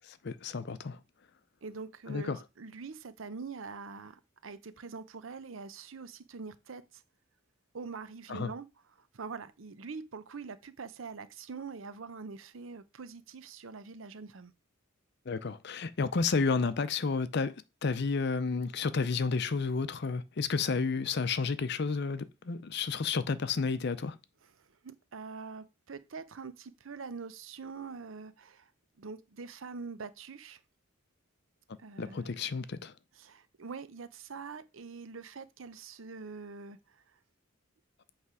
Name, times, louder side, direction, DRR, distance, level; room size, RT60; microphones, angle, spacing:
voice 1, 0.3-1.0 2.1-2.4 8.3-8.5 15.3-24.2 32.0-32.9, left 4 dB, 55° left, 0.5 m, -31 dB
voice 2, 1.6-7.0 7.7-8.7 9.0-14.5 24.4-28.7 29.0-30.6 31.8-32.5 33.1-37.2, right 4 dB, 75° right, 0.7 m, -44 dB
8.2 x 3.3 x 4.8 m
head